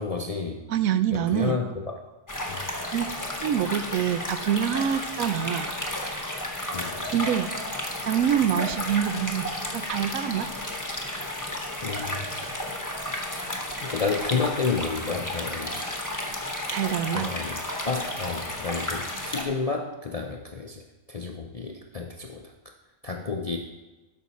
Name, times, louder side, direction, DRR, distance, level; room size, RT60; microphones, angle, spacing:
voice 1, 0.0-0.6 1.1-2.0 2.5-2.6 6.7-7.1 11.8-12.4 13.8-16.0 17.1-20.8 21.1-22.5 23.0-23.6, left 4 dB, 50° left, 2 dB, 0.4 m, -31 dB
voice 2, 0.7-1.6 2.9-3.1 3.4-5.7 7.1-7.5 8.1-9.5 9.7-10.5 16.7-17.3, right 9 dB, 85° right, 12 dB, 1.0 m, -25 dB
sound 1, 2.3-19.4, left 1 dB, 15° left, 1.0 m, -32 dB
12.5 x 5.6 x 4.2 m, 1.1 s
omnidirectional pair, 1.4 m